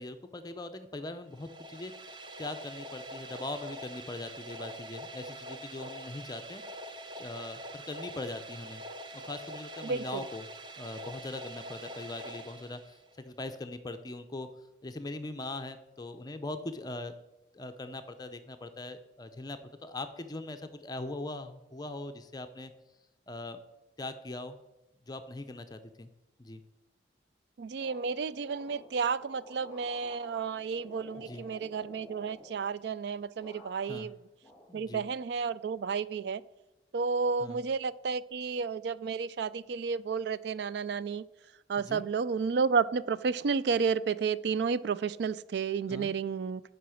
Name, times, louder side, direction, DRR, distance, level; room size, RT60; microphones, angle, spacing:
voice 1, 0.0-1.9 2.4-6.6 7.2-8.8 9.2-10.4 10.8-14.5 14.8-17.1 17.5-22.7 23.3-23.6 24.0-24.6 25.1-26.1 26.4-26.6 31.3-31.4 33.9-34.1 34.7-35.0 37.4-37.6 41.9-42.0 45.9-46.1, left 2 dB, 20° left, 8 dB, 0.5 m, -41 dB
sound 1, 1.3-13.2, right 1 dB, 25° right, 0.6 m, -44 dB
voice 2, 9.8-10.3 27.6-34.2 34.7-36.4 36.9-41.2 41.7-46.6, right 5 dB, 65° right, 17 dB, 0.4 m, -31 dB
sound 2, 27.8-33.0 33.4-34.1 34.4-35.3, left 1 dB, 5° left, 2.2 m, -53 dB
10.0 x 5.0 x 6.3 m, 0.94 s
head